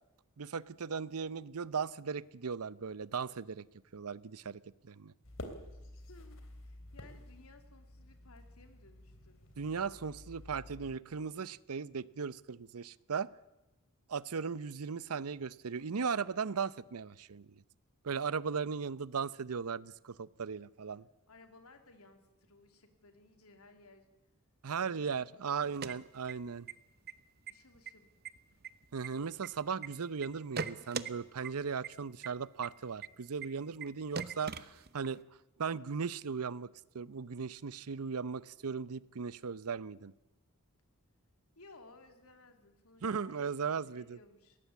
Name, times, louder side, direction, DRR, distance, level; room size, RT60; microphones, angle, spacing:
voice 1, 0.4-3.7 3.9-5.1 9.6-13.3 14.1-17.5 18.0-21.1 24.6-26.7 28.9-35.2 35.6-36.7 36.9-40.1 43.0-44.2, right 6 dB, 85° right, 19 dB, 0.7 m, -37 dB
sound 1, 5.2-10.9, left 1 dB, 60° left, 3.2 m, -50 dB
voice 2, 6.0-9.4 21.3-24.1 24.8-25.3 27.5-28.1 28.5-28.6 41.5-44.6, left 2 dB, 80° left, 6 dB, 2.9 m, -59 dB
sound 2, 25.6-26.7 27.0-27.1 27.5-27.9 28.2-29.9 30.2-31.1 31.4-31.5 31.8-31.9 32.2-32.3 32.6-32.7 33.0-33.1 33.4-33.5 33.8-33.9 34.1-35.2, right 5 dB, 45° right, 0.9 m, -40 dB
21.0 x 17.5 x 8.4 m, 0.97 s
head